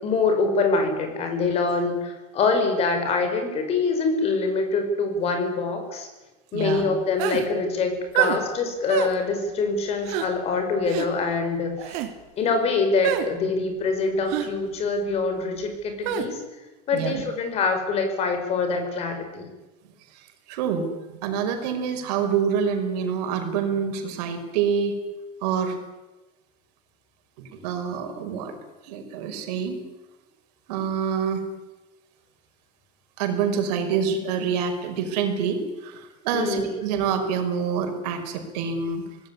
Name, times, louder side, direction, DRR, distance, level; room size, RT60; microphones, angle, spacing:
voice 1, 0.0-6.1 6.5-12.0 12.4-16.4 16.9-19.5 36.3-36.7, left 4 dB, 30° left, 6 dB, 5.5 m, -25 dB
voice 2, 6.5-6.9 11.8-11.9 16.9-17.2 20.1-20.9 21.2-24.9 25.4-25.8 27.4-28.5 28.8-29.8 30.7-31.4 33.2-39.0, right 7 dB, 70° right, 6 dB, 5.7 m, -26 dB
sound 1, 7.2-7.5 8.1-8.4 8.9-9.1 10.0-10.3 10.9-11.1 11.8-12.1 13.0-13.3 14.3-14.5 16.0-16.3, right 11 dB, 55° right, 3.3 m, -25 dB
25.0 x 18.5 x 9.9 m, 1.1 s
cardioid pair, 175°, 21 cm